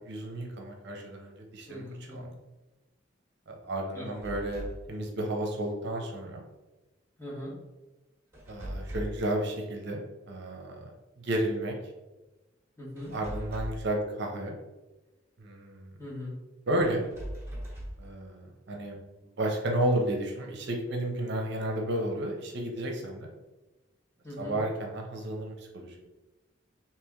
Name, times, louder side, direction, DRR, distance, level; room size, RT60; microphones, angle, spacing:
voice 1, 0.0-1.8 2.1-2.3 3.5-6.4 8.5-10.0 10.3-11.7 13.1-14.5 15.4-15.9 16.7-17.0 18.0-19.0 19.4-23.3 24.4-26.1, right 1 dB, 60° right, 1 dB, 0.6 m, -32 dB
voice 2, 1.7-2.3 3.9-4.1 7.2-7.5 12.8-13.2 16.0-16.3 24.2-24.6, left 1 dB, 15° left, -5 dB, 1.0 m, -40 dB
sound 1, 4.1-4.9 8.3-9.3 13.0-13.9 16.9-18.1, equal, 15° right, 1.2 m, -39 dB
3.2 x 2.9 x 3.5 m, 1.1 s
head